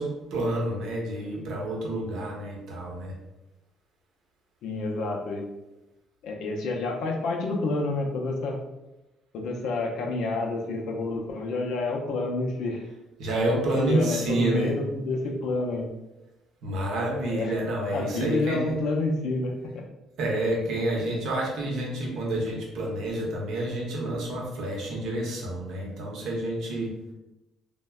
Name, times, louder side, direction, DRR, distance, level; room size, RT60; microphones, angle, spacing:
voice 1, 0.0-3.1 13.2-14.7 16.6-18.8 20.2-26.9, right 1 dB, 70° right, -1 dB, 0.7 m, -29 dB
voice 2, 4.6-5.5 6.2-8.6 9.3-12.8 13.4-15.9 17.3-17.5 17.9-19.8, left 2 dB, 70° left, 1 dB, 0.5 m, -29 dB
3.3 x 2.1 x 2.3 m, 0.99 s
supercardioid pair, 60°, 0 cm